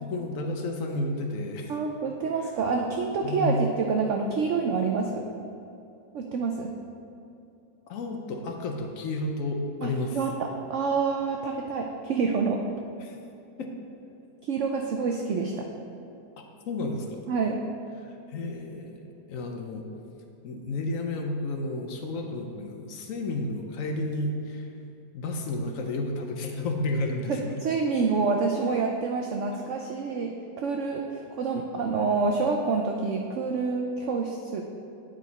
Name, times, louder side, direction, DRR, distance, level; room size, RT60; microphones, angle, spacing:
voice 1, 0.0-1.7 2.4-2.5 3.2-3.6 7.9-10.2 13.0-13.2 13.6-13.7 16.7-17.2 18.0-19.8 20.4-24.7 25.1-27.6, left 2 dB, 60° left, 3 dB, 0.9 m, -32 dB
voice 2, 1.7-5.3 6.1-6.7 9.8-10.3 10.7-12.6 14.4-15.6 17.3-17.6 27.3-34.6, right 4 dB, 85° right, 2 dB, 0.6 m, -27 dB
9.0 x 5.1 x 4.0 m, 2.7 s
omnidirectional pair, 1.9 m